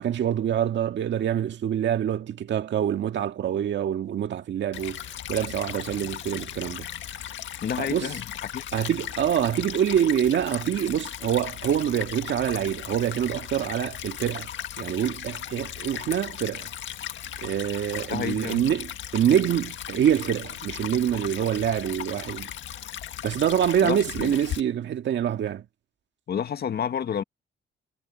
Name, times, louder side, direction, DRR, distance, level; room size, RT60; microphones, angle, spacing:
voice 1, 0.0-5.0 5.3-6.9 7.8-8.1 8.7-14.5 14.8-16.7 17.4-22.5 23.2-25.7, right 9 dB, 65° right, 1.9 m, -25 dB
Stream / Trickle dribble, 4.7-24.6, left 11 dB, 70° left, 1.8 m, -37 dB
voice 2, 7.6-8.2 8.5-8.6 18.1-18.7 23.8-24.4 26.3-27.2, left 8 dB, 55° left, 1.7 m, -29 dB
cardioid pair, 90°, 20 cm